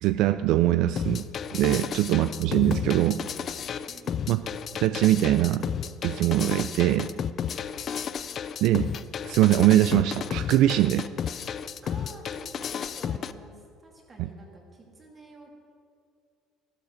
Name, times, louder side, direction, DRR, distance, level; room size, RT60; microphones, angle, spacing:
voice 1, 0.0-1.3 1.5-3.2 4.3-4.4 4.8-5.7 6.0-7.1 8.6-8.9 9.3-11.0, right 14 dB, 55° right, 12 dB, 0.3 m, -22 dB
sound 1, 1.0-13.3, left 8 dB, 30° left, 0.4 m, -32 dB
voice 2, 3.9-4.2 11.8-15.5, right 2 dB, 20° right, 0 dB, 2.4 m, -50 dB
14.5 x 12.0 x 6.5 m, 2.3 s
cardioid pair, 175°, 0 cm